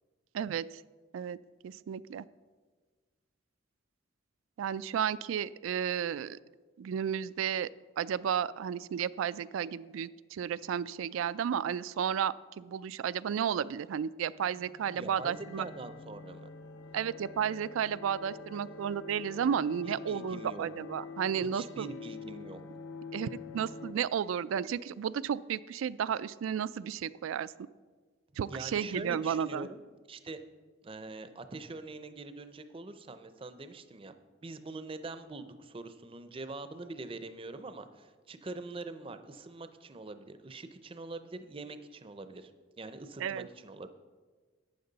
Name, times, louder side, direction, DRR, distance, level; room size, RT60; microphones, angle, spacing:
voice 1, 0.3-0.8 1.1-1.4 1.6-2.3 4.6-6.4 6.8-7.7 8.0-15.7 16.9-21.9 23.1-27.5 28.4-29.7 43.2-43.5, right 8 dB, 85° right, 18 dB, 0.3 m, -33 dB
sound 1, 14.3-23.9, left 4 dB, 80° left, 0.8 m, -46 dB
voice 2, 14.9-16.5 19.8-20.7 21.4-22.6 28.5-29.8 30.1-30.4 30.8-34.2 34.4-42.5 42.8-43.9, right 3 dB, 25° right, 10 dB, 0.5 m, -44 dB
12.0 x 8.7 x 4.0 m, 1.4 s
head